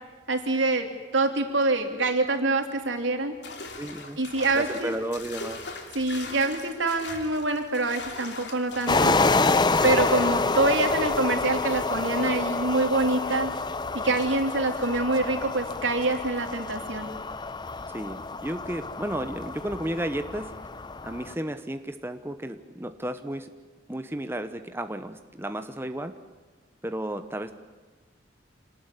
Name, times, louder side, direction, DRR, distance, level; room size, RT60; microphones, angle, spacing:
voice 1, 0.3-3.3 4.2-4.9 5.9-9.2 9.8-13.5 13.9-17.1, right 2 dB, 85° right, 5 dB, 3.2 m, -25 dB
sound 1, 3.4-10.3, left 3 dB, 65° left, 2.9 m, -41 dB
voice 2, 3.8-4.2 4.5-5.7 12.1-12.3 17.9-20.6 21.0-23.5 23.9-26.2 26.8-27.5, right 1 dB, 10° right, 8 dB, 1.0 m, -33 dB
sound 2, 8.9-21.3, left 3 dB, 25° left, 0.7 m, -28 dB
26.5 x 19.0 x 9.9 m, 1.3 s
head